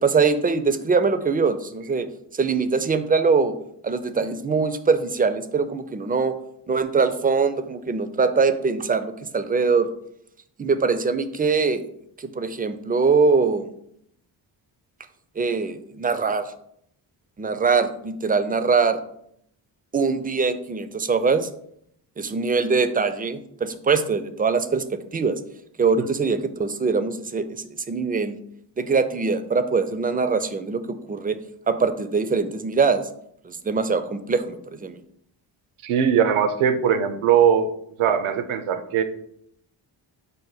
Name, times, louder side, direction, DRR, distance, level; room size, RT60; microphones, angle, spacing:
voice 1, 0.0-2.1 2.3-3.5 3.8-6.3 6.7-9.9 10.6-11.8 12.2-13.7 15.4-16.4 17.4-19.0 19.9-21.5 22.2-25.4 25.8-28.4 28.8-31.4 31.7-33.0 33.4-35.0, right 4 dB, 20° right, 10 dB, 0.3 m, -22 dB
voice 2, 35.8-37.7 38.0-39.0, right 8 dB, 80° right, 9 dB, 0.6 m, -20 dB
5.2 x 2.1 x 3.9 m, 0.71 s
supercardioid pair, 50°, 49 cm